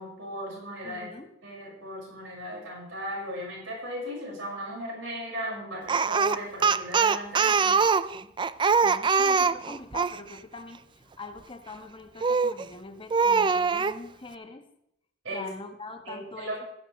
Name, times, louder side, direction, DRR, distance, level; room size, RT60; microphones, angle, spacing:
voice 1, 0.0-1.1 1.4-7.8 15.2-15.5 16.0-16.7, equal, 75° right, -3 dB, 5.9 m, -37 dB
voice 2, 0.8-1.3 8.1-8.3 8.8-14.6 15.3-16.7, left 3 dB, 25° left, 5 dB, 1.3 m, -43 dB
Speech, 5.9-10.2 12.2-12.6 13.1-14.0, right 5 dB, 25° right, 0.4 m, -23 dB
16.0 x 13.5 x 3.2 m, 0.77 s
head